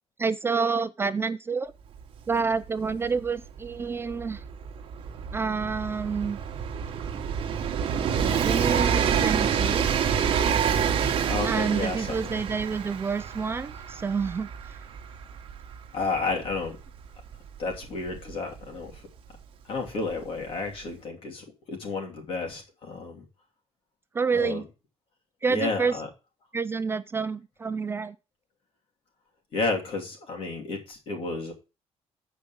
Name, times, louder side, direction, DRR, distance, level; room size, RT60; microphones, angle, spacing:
voice 1, 0.2-1.7 2.3-4.4 5.3-6.4 8.4-9.9 11.4-14.5 24.1-24.6 25.4-26.0 26.5-28.2, right 5 dB, 20° right, 0.4 m, -28 dB
Train, 2.0-2.1 2.3-18.9 19.9-20.0, right 7 dB, 55° right, 1.2 m, -28 dB
voice 2, 11.3-12.4 15.9-16.8 17.6-19.0 19.7-23.2 24.3-24.6 25.5-26.1 29.5-31.5, left 3 dB, 55° left, 2.8 m, -31 dB
7.8 x 5.0 x 7.0 m
cardioid pair, 160°, 11 cm